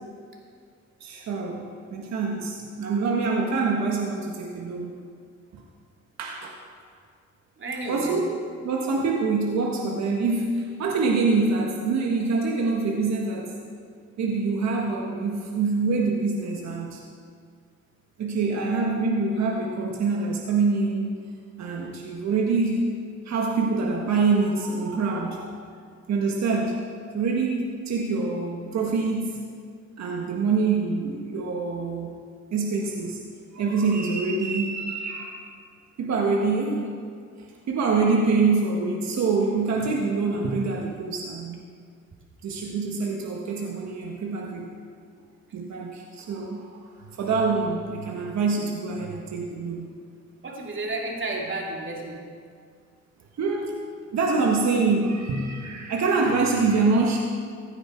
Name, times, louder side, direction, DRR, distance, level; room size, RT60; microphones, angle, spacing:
voice 1, 1.0-4.9 5.5-5.6 6.2-6.6 7.9-8.4 8.6-13.6 14.2-17.0 18.2-21.2 21.6-22.9 23.2-25.6 26.1-26.9 27.1-29.4 30.0-32.2 32.5-33.2 33.5-35.5 36.0-37.0 37.4-41.6 42.4-44.7 45.5-49.9 53.4-53.7 54.1-57.2, right 4 dB, 65° right, 0 dB, 1.5 m, -25 dB
voice 2, 7.6-8.2 50.4-52.2, right 2 dB, 40° right, -1 dB, 2.7 m, -31 dB
16.0 x 9.7 x 4.5 m, 2.1 s
cardioid pair, 90°, 30 cm